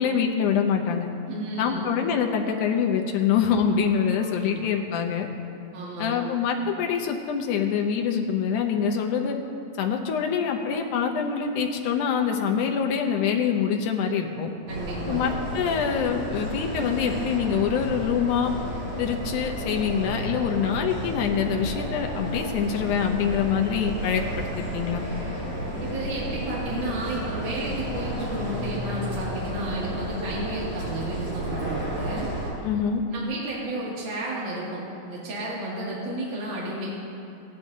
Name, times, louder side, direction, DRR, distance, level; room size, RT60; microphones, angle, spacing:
voice 1, 0.0-1.1 1.6-5.3 6.0-9.4 9.8-14.5 15.1-18.5 19.0-25.0 32.6-33.0, left 7 dB, 75° left, 2 dB, 2.1 m, -25 dB
voice 2, 1.3-1.8 4.2-4.3 4.5-4.7 5.7-6.2 14.7-15.2 25.8-32.3 33.1-36.9, right 1 dB, 40° right, -7 dB, 2.6 m, -32 dB
sound 1, 14.7-32.5, right 1 dB, 55° right, 4.2 m, -32 dB
17.5 x 10.5 x 2.7 m, 2.6 s
omnidirectional pair, 4.1 m